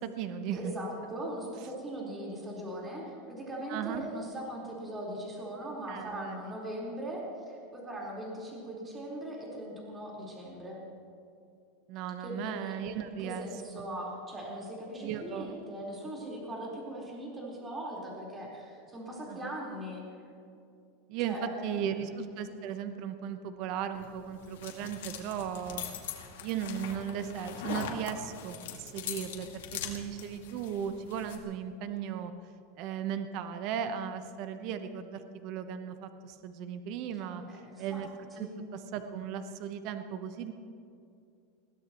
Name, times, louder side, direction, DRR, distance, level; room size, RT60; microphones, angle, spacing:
voice 1, 0.0-0.7 3.7-4.1 5.9-6.4 11.9-13.5 13.8-13.9 15.0-15.5 19.3-19.6 21.1-21.4 21.6-25.8 26.4-32.3 32.8-37.4 37.8-38.1 38.4-38.5 38.9-40.5, right 8 dB, 50° right, 9 dB, 0.9 m, -36 dB
voice 2, 0.5-10.8 12.2-12.8 13.2-20.0 21.2-22.0 37.2-38.0 38.4-38.6, right 1 dB, 15° right, -4 dB, 4.2 m, -40 dB
sound 1, 23.9-31.4, left 7 dB, 85° left, 1.9 m, -42 dB
21.5 x 16.0 x 3.1 m, 2.5 s
supercardioid pair, 140°, 0 cm